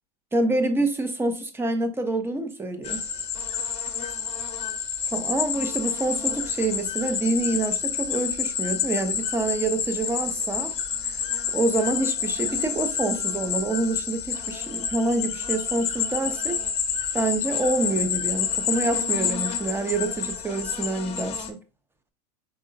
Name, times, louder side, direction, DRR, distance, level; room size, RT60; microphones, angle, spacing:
voice 1, 0.3-3.0 5.0-10.7 11.5-16.6 17.1-21.6, right 2 dB, 10° right, 0.7 m, -27 dB
sound 1, 2.8-21.5, left 7 dB, 30° left, 0.9 m, -29 dB
5.0 x 3.7 x 2.5 m
hypercardioid pair, 95°, 21 cm